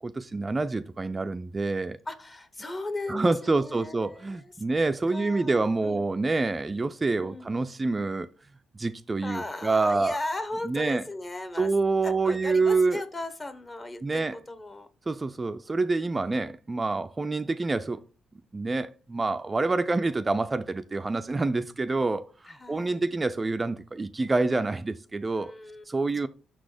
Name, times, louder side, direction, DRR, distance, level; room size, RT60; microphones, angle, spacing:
voice 1, 0.0-2.0 3.1-8.3 8.7-10.2 10.6-11.0 11.6-13.0 14.0-14.4 15.1-18.0 18.5-25.5 25.9-26.3, right 3 dB, 25° right, 0.3 m, -27 dB
voice 2, 2.1-4.8 5.1-6.0 7.2-7.5 9.2-11.7 12.0-14.9 16.2-16.5 22.5-23.1 25.3-26.3, left 2 dB, 25° left, 1.0 m, -37 dB
6.1 x 4.0 x 4.9 m
cardioid pair, 90°, 0 cm